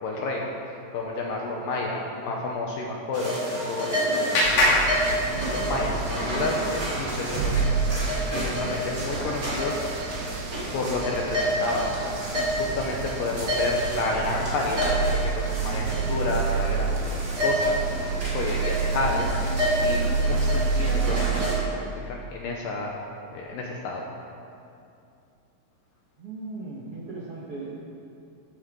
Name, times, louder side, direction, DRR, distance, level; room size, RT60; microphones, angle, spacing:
voice 1, 0.0-0.5 0.9-4.5 4.8-4.9 5.3-9.9 10.7-17.9 18.3-23.0 23.3-24.0, left 3 dB, 70° left, -1 dB, 2.2 m, -31 dB
sound 1, 3.1-21.5, equal, 25° right, 1.9 m, -30 dB
Clapping, 3.2-5.9, left 1 dB, 55° left, 3.7 m, -26 dB
sound 2, 4.4-21.6, right 5 dB, 80° right, 2.4 m, -29 dB
voice 2, 26.2-27.7, right 3 dB, 50° right, -7 dB, 1.7 m, -37 dB
14.5 x 11.5 x 3.9 m, 2.6 s
omnidirectional pair, 4.8 m